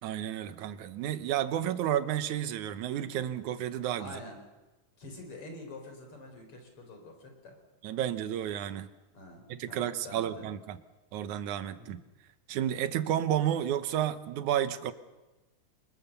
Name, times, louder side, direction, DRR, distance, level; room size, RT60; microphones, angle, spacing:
voice 1, 0.0-4.1 7.8-8.9 9.5-10.8 11.1-12.0 12.5-14.9, right 11 dB, 70° right, 11 dB, 2.3 m, -31 dB
voice 2, 4.0-4.4 5.0-7.6 9.1-10.5 11.8-12.0, left 1 dB, 40° left, 3 dB, 5.6 m, -47 dB
27.5 x 20.5 x 7.0 m, 1.1 s
omnidirectional pair, 3.7 m